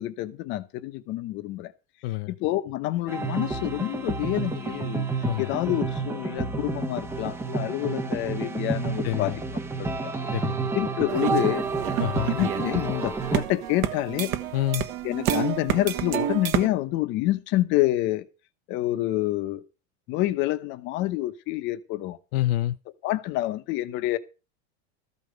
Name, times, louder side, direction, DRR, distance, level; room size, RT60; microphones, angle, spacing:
voice 1, 0.0-1.7 2.3-5.0 5.4-9.3 9.8-10.1 10.7-11.7 12.2-14.3 15.0-18.2 18.7-19.6 20.1-22.2 23.0-24.2, left 16 dB, 35° left, 0.9 m, -27 dB
voice 2, 2.0-2.3 5.2-5.5 9.0-9.4 10.3-10.7 12.0-12.3 14.5-14.8 22.3-22.7, left 15 dB, 65° left, 0.7 m, -27 dB
sound 1, 3.1-13.4, right 4 dB, 10° right, 0.7 m, -30 dB
sound 2, 11.1-16.7, right 12 dB, 40° right, 1.1 m, -29 dB
14.0 x 5.2 x 7.8 m
supercardioid pair, 175°, 33 cm